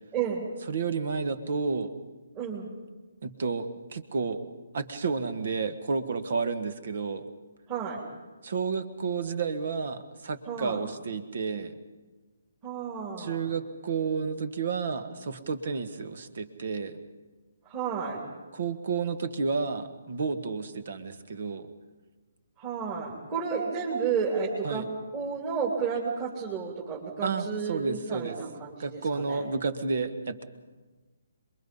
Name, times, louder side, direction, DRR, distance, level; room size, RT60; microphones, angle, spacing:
voice 1, 0.1-0.4 2.4-2.7 7.7-8.0 10.5-10.8 12.6-13.5 17.6-18.2 22.6-24.9 25.1-29.0 29.3-29.4, right 6 dB, 25° right, -3 dB, 3.1 m, -31 dB
voice 2, 0.7-1.9 3.2-4.4 4.7-7.2 8.4-11.8 13.2-17.0 18.5-21.7 24.6-24.9 27.2-28.4 28.8-30.4, right 5 dB, 55° right, 11 dB, 1.6 m, -31 dB
27.0 x 22.5 x 5.5 m, 1.3 s
figure-of-eight pair, 135°, 0 cm